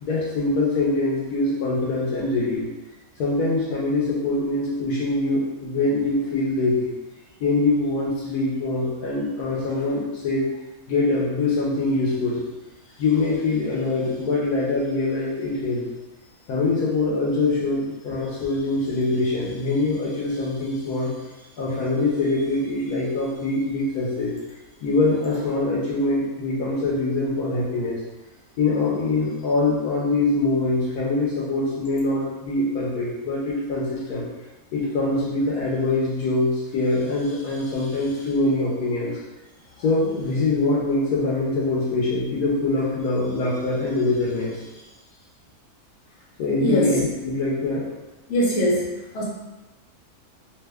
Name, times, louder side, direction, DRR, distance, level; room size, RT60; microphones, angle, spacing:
voice 1, 0.0-2.6 3.2-6.9 7.4-10.5 10.9-12.4 13.0-15.8 16.5-21.1 21.6-24.3 24.8-28.0 28.6-34.3 34.7-39.1 39.8-44.7 46.4-47.8, left 2 dB, 85° left, -5 dB, 1.2 m, -23 dB
voice 2, 48.3-48.8 49.1-49.2, equal, 65° left, -5 dB, 1.3 m, -21 dB
2.9 x 2.1 x 3.3 m, 1.1 s
omnidirectional pair, 1.6 m